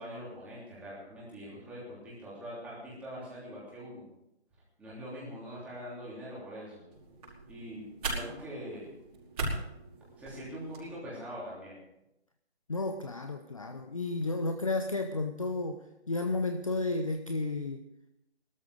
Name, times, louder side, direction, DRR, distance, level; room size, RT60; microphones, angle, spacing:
voice 1, 0.0-4.1 4.8-6.9 7.5-8.9 10.2-11.8, equal, 5° right, -7 dB, 3.2 m, -43 dB
sound 1, 6.9-10.9, right 2 dB, 35° right, 5.2 m, -39 dB
voice 2, 12.7-17.9, left 2 dB, 30° left, 7 dB, 0.6 m, -32 dB
17.5 x 13.0 x 4.9 m, 0.87 s
figure-of-eight pair, 165°, 33 cm